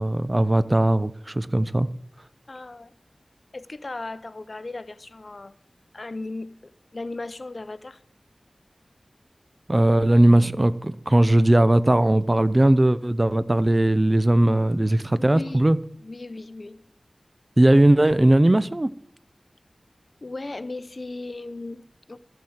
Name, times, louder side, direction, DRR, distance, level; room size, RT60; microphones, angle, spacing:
voice 1, 0.0-1.9 9.7-15.8 17.6-18.9, right 1 dB, 30° right, 0.7 m, -19 dB
voice 2, 2.5-2.9 3.5-5.5 5.9-8.0 14.7-15.7 16.0-16.8 20.2-22.2, left 2 dB, 55° left, 0.8 m, -37 dB
13.5 x 7.3 x 8.0 m
wide cardioid pair, 55°, 0 cm